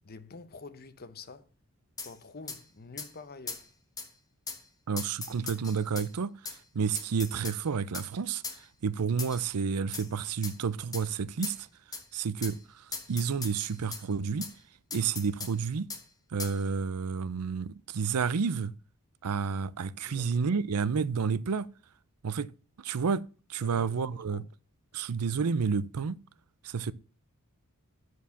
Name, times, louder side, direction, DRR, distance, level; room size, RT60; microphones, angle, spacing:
voice 1, 0.0-1.5 2.0-3.7 20.1-20.4 23.6-24.5, left 3 dB, 45° left, 0.8 m, -47 dB
sound 1, 2.0-2.1 2.5-2.6 3.0-3.1 3.5-3.6 4.0-4.1 4.5-4.6 5.0-6.1 6.5-6.6 7.0-7.6 7.9-8.1 8.4-8.6 9.2-9.5 9.9-10.1 10.4-10.6 10.9-11.1 11.4-11.6 11.9-12.0 12.4-12.6 12.9-14.0 14.4-14.5 14.9-15.5 15.9-16.0 16.4-16.6, left 4 dB, 15° left, 1.3 m, -39 dB
voice 2, 4.9-11.7 12.1-14.5 14.9-15.9 16.3-18.7 19.2-21.7 22.2-22.5 22.8-23.2 23.5-24.4 24.9-26.2 26.6-26.9, right 5 dB, 90° right, 0.5 m, -30 dB
10.5 x 4.8 x 7.1 m
head